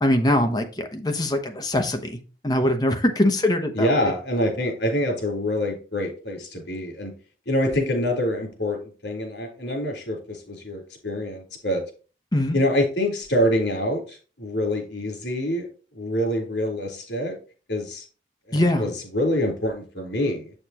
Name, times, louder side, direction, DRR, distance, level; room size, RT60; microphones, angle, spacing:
voice 1, 0.0-2.2 2.4-4.1 12.3-12.6 18.5-18.9, left 1 dB, 20° left, 0.8 m, -22 dB
voice 2, 3.7-7.1 7.5-11.8 12.5-15.7 15.9-17.4 17.7-18.0 18.5-20.5, left 1 dB, 75° left, 3.7 m, -26 dB
7.9 x 6.6 x 2.9 m
head